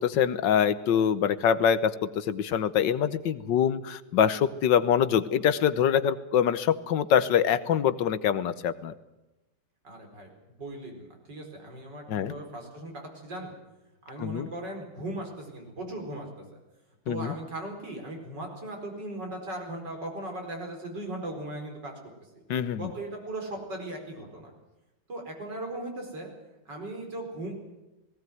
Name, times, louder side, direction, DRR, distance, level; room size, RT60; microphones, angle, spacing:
voice 1, 0.0-8.9 12.1-12.3 14.2-14.5 17.1-17.3 22.5-22.9, left 8 dB, 85° left, 14 dB, 1.7 m, -24 dB
voice 2, 9.8-10.3 10.6-13.5 14.1-16.3 16.5-16.6 17.1-21.9 22.3-22.4 22.8-24.5 25.1-26.3 26.7-27.5, right 1 dB, 75° right, 2 dB, 5.3 m, -38 dB
18.5 x 18.0 x 9.3 m, 1.0 s
omnidirectional pair, 1.9 m